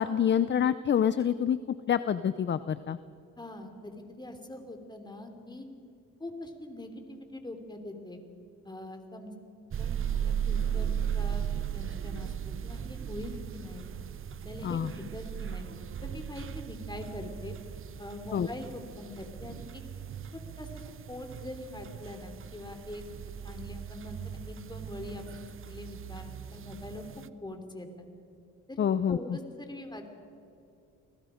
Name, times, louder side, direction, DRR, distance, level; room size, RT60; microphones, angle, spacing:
voice 1, 0.0-3.0 14.6-14.9 18.3-18.5 28.8-29.4, left 8 dB, 40° left, 14 dB, 0.6 m, -27 dB
voice 2, 3.4-5.6 6.2-8.2 8.6-9.3 9.8-11.4 11.7-13.9 14.4-15.7 16.0-17.5 18.0-19.6 20.3-20.7 21.1-23.0 23.4-27.0 27.4-27.9 28.7-28.8 29.1-30.1, left 1 dB, 15° left, 5 dB, 3.2 m, -43 dB
sound 1, 9.7-27.3, right 8 dB, 45° right, 0.8 m, -37 dB
30.0 x 20.0 x 5.1 m, 2.7 s
cardioid pair, 90°, 30 cm